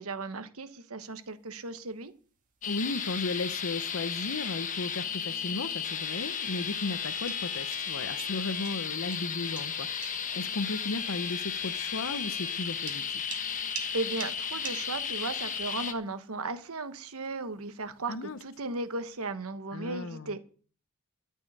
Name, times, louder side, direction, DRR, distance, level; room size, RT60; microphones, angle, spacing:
voice 1, 0.0-2.1 13.6-20.4, right 3 dB, 70° right, 1.2 m, -36 dB
sound 1, 1.0-19.3, right 6 dB, 35° right, 2.1 m, -51 dB
voice 2, 2.6-13.2 18.1-18.4 19.7-20.4, left 3 dB, 60° left, 0.8 m, -35 dB
sound 2, 2.6-15.9, left 7 dB, 35° left, 1.1 m, -34 dB
13.5 x 5.5 x 8.6 m
head